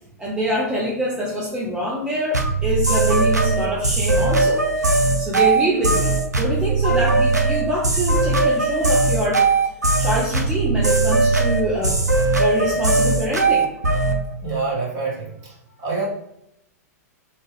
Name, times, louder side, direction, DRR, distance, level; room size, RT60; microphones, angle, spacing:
voice 1, 0.2-9.5 10.0-12.0 12.4-13.7, equal, 10° right, -5 dB, 0.5 m, -25 dB
sound 1, 2.3-14.2, right 3 dB, 90° right, 0.4 m, -19 dB
voice 2, 14.4-15.5 15.8-16.1, right 4 dB, 40° right, -4 dB, 1.2 m, -26 dB
2.9 x 2.2 x 3.3 m, 0.81 s
figure-of-eight pair, 105°, 9 cm